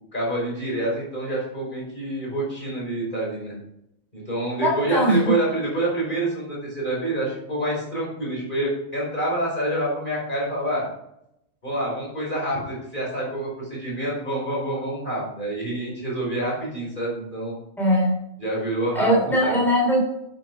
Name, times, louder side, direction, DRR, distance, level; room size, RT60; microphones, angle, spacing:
voice 1, 0.1-3.5 4.1-10.8 11.6-17.6 18.4-19.6, right 1 dB, 35° left, -4 dB, 5.4 m, -27 dB
voice 2, 4.6-5.3 17.8-18.2 18.9-20.0, equal, ahead, -4 dB, 3.6 m, -20 dB
12.0 x 8.3 x 4.7 m, 0.80 s
omnidirectional pair, 1.4 m